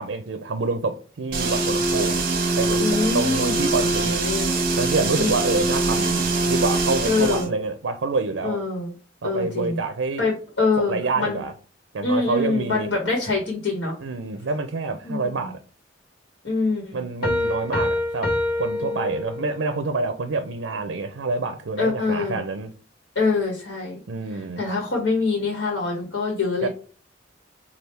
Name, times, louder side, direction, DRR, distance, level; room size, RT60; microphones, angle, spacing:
voice 1, 0.0-2.2 2.6-4.2 4.8-8.6 9.2-10.3 10.8-11.5 11.9-12.9 14.0-15.6 16.9-22.7 24.1-24.6 26.6-26.7, right 3 dB, 85° right, 0.5 m, -27 dB
sound 1, 1.3-7.5, right 3 dB, 55° right, 0.9 m, -23 dB
voice 2, 2.8-4.5 5.1-5.6 7.0-7.5 8.4-8.9 9.2-9.8 10.2-11.4 12.0-13.9 15.0-15.4 16.4-17.0 18.9-19.0 21.8-22.4 23.1-24.0 24.6-26.7, left 3 dB, 75° left, 1.3 m, -25 dB
Piano, 17.2-19.7, left 2 dB, 55° left, 0.9 m, -26 dB
3.4 x 2.3 x 4.4 m
head